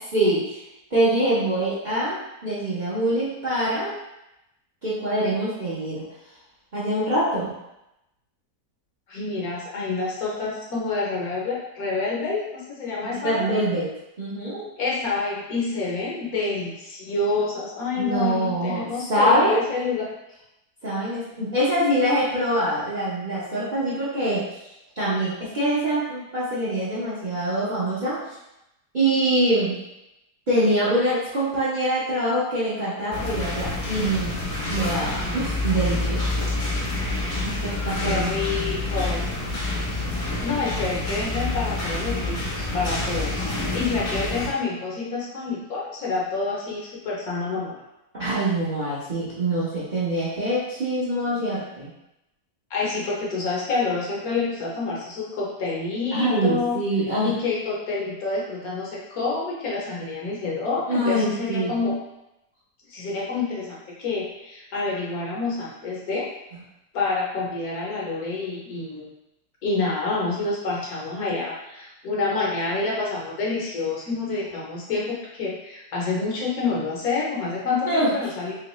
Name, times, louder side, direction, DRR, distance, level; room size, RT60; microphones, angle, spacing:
voice 1, 0.1-0.6 0.9-3.9 4.8-6.0 6.7-7.5 13.2-13.9 14.2-14.6 18.0-18.8 19.1-19.6 20.8-24.4 25.0-28.2 28.9-29.8 30.5-34.4 34.6-36.2 37.4-38.3 48.1-51.9 56.1-57.3 60.9-61.7 77.9-78.1, right 1 dB, 40° right, -9 dB, 0.7 m, -24 dB
voice 2, 9.1-13.6 14.8-20.1 38.0-39.2 40.4-43.4 43.7-47.8 52.7-56.8 57.2-62.0 62.9-66.3 66.9-69.1 69.6-78.6, left 3 dB, 65° left, -4 dB, 1.2 m, -28 dB
sound 1, 33.1-44.5, left 2 dB, 35° left, 0.6 m, -27 dB
3.1 x 3.1 x 3.0 m, 0.90 s
omnidirectional pair, 1.8 m